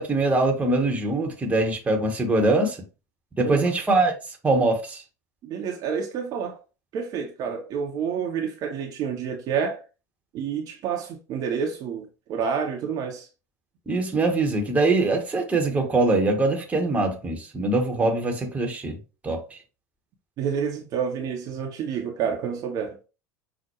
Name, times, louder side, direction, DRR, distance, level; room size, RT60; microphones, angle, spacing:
voice 1, 0.0-2.8 3.4-4.1 4.4-5.0 13.9-19.0 19.2-19.6, right 2 dB, 15° right, 1.0 m, -23 dB
voice 2, 5.4-6.6 6.9-9.8 10.3-13.3 20.4-23.0, right 7 dB, 40° right, 0.8 m, -29 dB
5.8 x 2.1 x 3.0 m
figure-of-eight pair, 75°, 9 cm